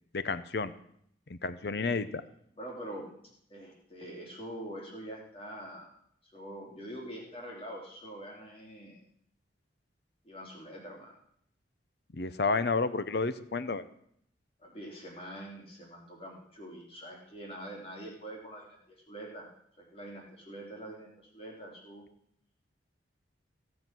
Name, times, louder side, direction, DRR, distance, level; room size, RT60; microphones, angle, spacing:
voice 1, 0.1-0.7 1.3-2.2 12.1-13.8, left 4 dB, 55° left, 13 dB, 0.7 m, -31 dB
voice 2, 1.6-2.0 2.6-3.1 3.5-5.9 6.2-9.0 10.2-11.1 14.6-19.5 19.7-22.0, right 1 dB, 30° left, -1 dB, 3.2 m, -45 dB
16.0 x 7.4 x 6.1 m, 0.70 s
head